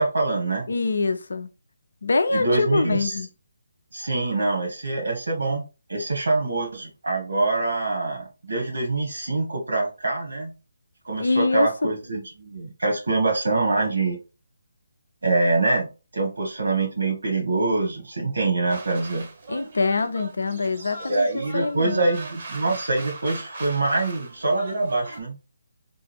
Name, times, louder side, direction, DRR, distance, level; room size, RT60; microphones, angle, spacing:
voice 1, 0.0-0.7 2.3-3.1 3.9-10.5 11.0-14.2 15.2-15.9 16.1-19.3 21.1-25.4, right 3 dB, 70° right, 1.7 m, -25 dB
voice 2, 0.7-1.5 2.0-3.3 11.2-11.9 19.5-21.3 21.5-22.0, left 3 dB, 70° left, 0.5 m, -24 dB
sound 1, 18.7-25.2, right 3 dB, 55° right, 1.0 m, -39 dB
3.7 x 2.5 x 3.4 m
figure-of-eight pair, 150°, 0 cm